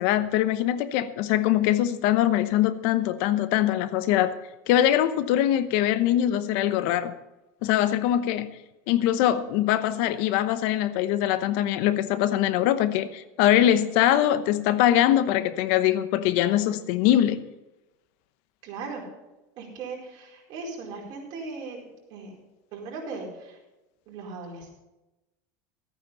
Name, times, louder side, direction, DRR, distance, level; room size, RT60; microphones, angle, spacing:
voice 1, 0.0-4.3 4.7-7.1 7.6-8.5 8.9-17.4, left 12 dB, 65° left, 0.9 m, -22 dB
voice 2, 18.6-19.0 19.6-22.3 22.7-23.6 24.1-24.7, right 4 dB, 50° right, 4.7 m, -38 dB
14.0 x 9.1 x 5.3 m
supercardioid pair, 135°, 9 cm